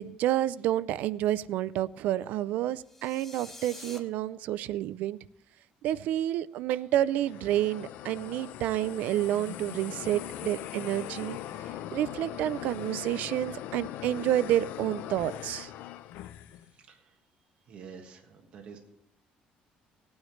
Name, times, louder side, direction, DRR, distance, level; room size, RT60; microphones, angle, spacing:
voice 1, 0.0-5.2 5.8-11.4 11.9-15.7, right 13 dB, 65° right, 18 dB, 0.4 m, -29 dB
sound 1, 2.8-4.0, left 2 dB, 10° left, 1.1 m, -46 dB
sound 2, 6.9-16.7, left 12 dB, 80° left, 0.5 m, -41 dB
voice 2, 17.7-18.8, right 6 dB, 40° right, 1 dB, 1.5 m, -47 dB
18.5 x 9.5 x 3.2 m, 0.74 s
cardioid pair, 175°, 3 cm